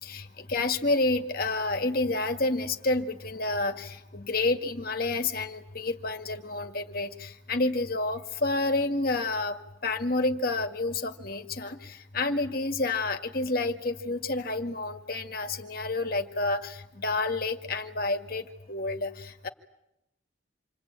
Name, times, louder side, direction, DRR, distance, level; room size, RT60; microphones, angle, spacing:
voice 1, 0.0-9.6 9.8-19.5, left 2 dB, 55° left, 6 dB, 1.9 m, -29 dB
28.0 x 23.0 x 8.9 m, 0.85 s
head